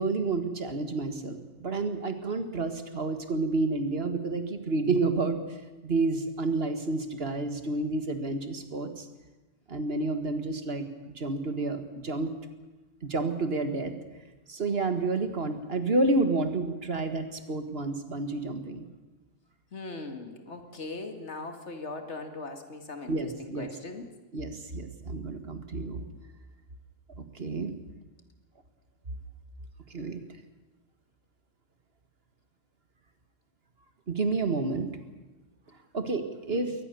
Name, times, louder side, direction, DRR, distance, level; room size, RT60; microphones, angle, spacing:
voice 1, 0.0-5.4 5.8-9.1 9.7-12.3 13.0-13.9 14.5-18.9 23.1-23.7 24.3-26.0 27.2-27.7 29.9-30.2 34.1-34.9 35.9-36.7, right 3 dB, 55° right, 8 dB, 1.9 m, -30 dB
voice 2, 19.7-24.1 36.5-36.7, left 3 dB, 70° left, 6 dB, 2.4 m, -40 dB
22.0 x 19.0 x 6.9 m, 1.2 s
omnidirectional pair, 1.2 m